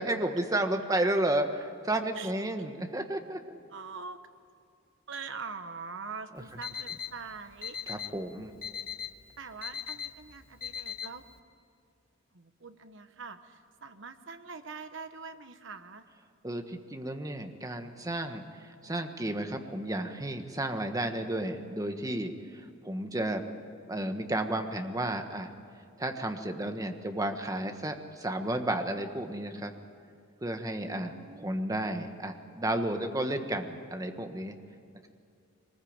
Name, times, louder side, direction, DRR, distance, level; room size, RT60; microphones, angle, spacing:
voice 1, 0.0-3.4 7.9-8.5 16.4-23.5 23.9-25.5 26.0-29.7 30.4-31.1 31.4-34.5, right 1 dB, 20° right, 5 dB, 1.4 m, -32 dB
voice 2, 3.7-4.2 5.1-8.1 9.4-11.2 12.3-16.0 30.8-31.7, right 5 dB, 65° right, 8 dB, 1.2 m, -44 dB
Alarm, 6.4-11.4, left 8 dB, 45° left, 1.1 m, -40 dB
23.5 x 20.5 x 8.8 m, 2.4 s
head